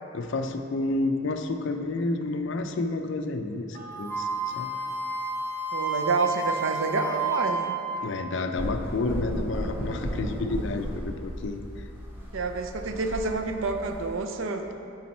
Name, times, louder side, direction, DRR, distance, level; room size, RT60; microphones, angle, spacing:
voice 1, 0.1-4.3 4.6-4.7 8.0-11.8, left 2 dB, 60° left, 6 dB, 0.4 m, -30 dB
sound 1, 3.7-12.5 12.8-12.9, right 7 dB, 40° right, 1.1 m, -49 dB
Wind instrument woodwind instrument, 4.1-8.2, right 3 dB, 10° left, 0.5 m, -30 dB
voice 2, 5.7-7.8 12.3-14.7, right 3 dB, 70° right, 6 dB, 0.5 m, -28 dB
sound 2, 8.5-14.2, equal, 10° right, 1.0 m, -35 dB
8.5 x 4.1 x 4.3 m, 2.6 s
head